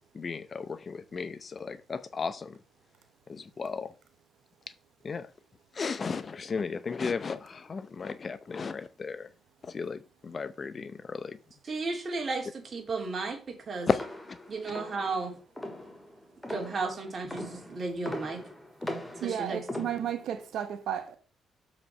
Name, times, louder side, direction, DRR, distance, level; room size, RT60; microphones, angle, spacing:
voice 1, 0.1-2.6 3.3-3.9 5.0-5.3 5.7-9.3 9.6-11.4 13.9-14.4 14.7-14.8, left 5 dB, 40° left, 0.6 m, -34 dB
voice 2, 11.7-13.9 14.5-15.3 16.5-18.4 19.2-19.6, right 3 dB, 40° right, 2.8 m, -34 dB
sound 1, 13.9-20.4, left 1 dB, 10° left, 1.9 m, -40 dB
voice 3, 19.2-21.2, right 9 dB, 75° right, 0.9 m, -33 dB
6.8 x 5.0 x 5.4 m
cardioid pair, 90°, 0 cm